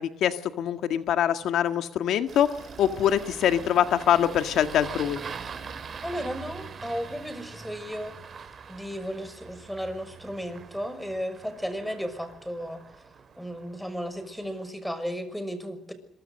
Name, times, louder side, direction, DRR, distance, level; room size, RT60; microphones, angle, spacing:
voice 1, 0.0-2.5 2.8-5.2, left 10 dB, 75° left, 8 dB, 1.8 m, -24 dB
Engine starting, 2.3-14.7, right 6 dB, 45° right, 5.3 m, -43 dB
voice 2, 6.0-8.2 8.7-12.8 13.4-15.9, equal, ahead, 11 dB, 6.3 m, -34 dB
26.5 x 24.0 x 6.6 m, 0.73 s
cardioid pair, 90°, 0 cm